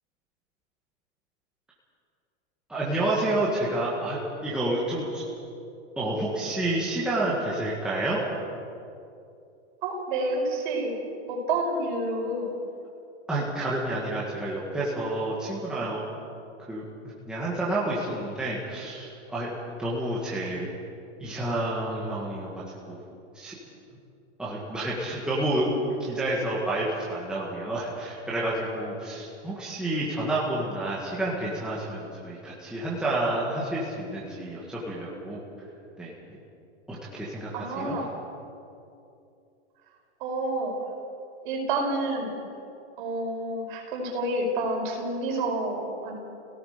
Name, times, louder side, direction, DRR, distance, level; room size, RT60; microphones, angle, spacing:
voice 1, 2.7-5.2 6.0-8.2 13.3-16.1 16.7-16.8 17.3-20.7 21.2-23.0 23.3-23.6 24.4-25.7 26.0-35.4 36.0-36.1 36.9-38.0, right 1 dB, ahead, -7 dB, 1.8 m, -29 dB
voice 2, 9.8-11.0 11.3-12.5 37.5-38.1 40.2-40.7 41.4-42.4 43.0-46.2, right 2 dB, 45° right, 0 dB, 5.5 m, -29 dB
29.5 x 17.5 x 5.1 m, 2.6 s
supercardioid pair, 170°, 35 cm